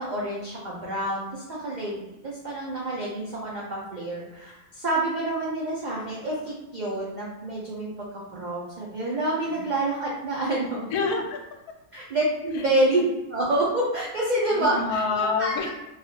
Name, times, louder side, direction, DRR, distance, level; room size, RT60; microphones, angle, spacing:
voice 1, 0.0-8.1 8.3-10.9 11.9-13.0 13.3-15.0 15.4-15.5, right 1 dB, 90° right, -5 dB, 0.4 m, -27 dB
voice 2, 10.9-11.4 12.5-12.7 14.5-15.7, left 4 dB, 90° left, 3 dB, 1.1 m, -27 dB
3.1 x 2.3 x 2.7 m, 0.99 s
omnidirectional pair, 1.5 m